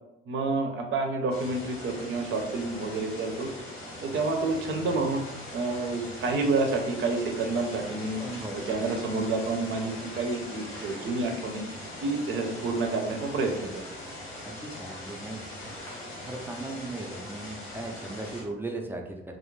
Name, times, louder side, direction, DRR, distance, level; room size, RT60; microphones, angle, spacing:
voice 1, 0.3-3.5 4.0-5.3 5.5-8.2 8.5-11.6 12.0-13.8, right 3 dB, 70° right, 3 dB, 0.6 m, -29 dB
sound 1, 1.3-18.4, left 1 dB, 90° left, 1.0 m, -41 dB
voice 2, 8.2-8.8 14.4-15.7 16.2-19.2, right 2 dB, 10° right, 2 dB, 0.4 m, -37 dB
2.4 x 2.0 x 3.1 m, 0.88 s
cardioid pair, 90°, 20 cm